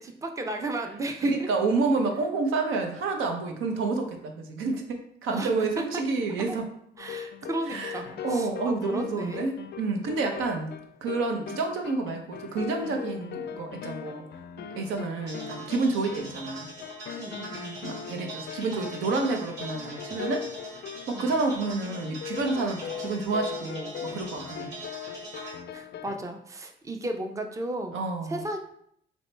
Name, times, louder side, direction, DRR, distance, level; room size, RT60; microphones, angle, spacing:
voice 1, 0.0-1.3 5.3-6.0 6.4-6.6 7.0-9.5 16.1-16.4 17.2-17.8 21.1-21.3 25.7-28.6, right 1 dB, 15° right, 5 dB, 0.5 m, -35 dB
voice 2, 1.2-6.6 7.7-8.0 8.2-10.7 11.0-14.2 14.6-16.7 17.8-20.4 21.1-24.7 27.9-28.4, right 3 dB, 85° right, 4 dB, 0.7 m, -29 dB
sound 1, 7.0-26.2, left 8 dB, 55° left, 0.4 m, -40 dB
sound 2, 15.3-25.5, right 1 dB, 65° right, 1.1 m, -42 dB
4.2 x 3.0 x 3.3 m, 0.70 s
cardioid pair, 90°, 20 cm